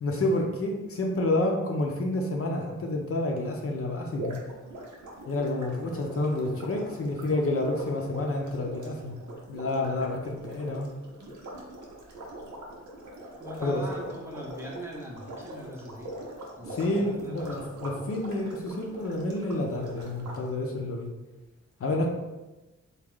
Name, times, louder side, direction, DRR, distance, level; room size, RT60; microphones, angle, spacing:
voice 1, 0.0-4.4 5.3-9.1 9.5-10.9 13.6-13.8 16.7-21.1 21.8-22.1, left 2 dB, 50° left, 1 dB, 0.6 m, -29 dB
sound 1, 4.1-20.4, right 1 dB, 85° right, 0.8 m, -42 dB
voice 2, 13.4-16.1 16.6-17.5, equal, 10° right, -3 dB, 0.7 m, -41 dB
3.5 x 2.3 x 3.5 m, 1.1 s
wide cardioid pair, 95°, 29 cm